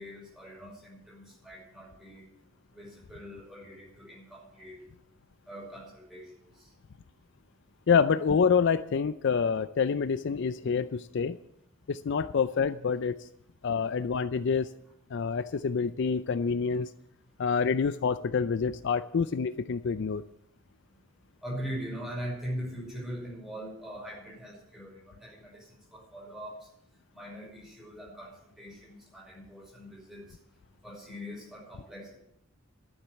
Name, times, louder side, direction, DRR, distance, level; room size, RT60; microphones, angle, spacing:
voice 1, 0.0-2.3 2.7-4.8 5.5-6.3 6.6-6.7 21.4-26.7 27.1-30.2 30.8-32.1, equal, ahead, -3 dB, 5.8 m, -41 dB
voice 2, 7.9-11.4 11.9-13.2 13.6-14.7 15.1-16.9 17.4-20.2, left 6 dB, 55° left, 13 dB, 0.4 m, -27 dB
13.0 x 7.3 x 8.2 m, 0.76 s
head